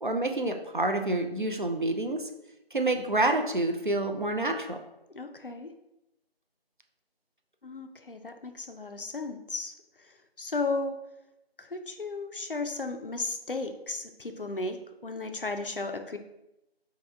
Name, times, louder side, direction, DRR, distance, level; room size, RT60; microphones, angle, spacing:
voice 1, 0.0-2.2 2.7-4.8, right 2 dB, 50° right, 5 dB, 0.5 m, -28 dB
voice 2, 5.1-5.7 7.6-9.7 10.4-11.0 11.6-14.8 15.0-16.2, left 3 dB, 60° left, 7 dB, 0.5 m, -34 dB
4.6 x 2.9 x 3.3 m, 0.88 s
figure-of-eight pair, 175°, 31 cm